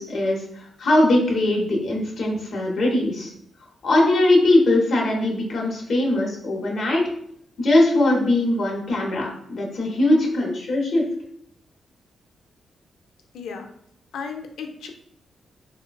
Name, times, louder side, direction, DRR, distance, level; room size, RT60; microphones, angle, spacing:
voice 1, 0.0-3.3 3.8-7.0 7.6-11.1, left 1 dB, 50° left, -2 dB, 0.7 m, -20 dB
voice 2, 13.3-13.7 14.1-14.9, left 5 dB, 90° left, 4 dB, 0.4 m, -34 dB
3.2 x 2.1 x 2.2 m, 0.68 s
wide cardioid pair, 170°, 0 cm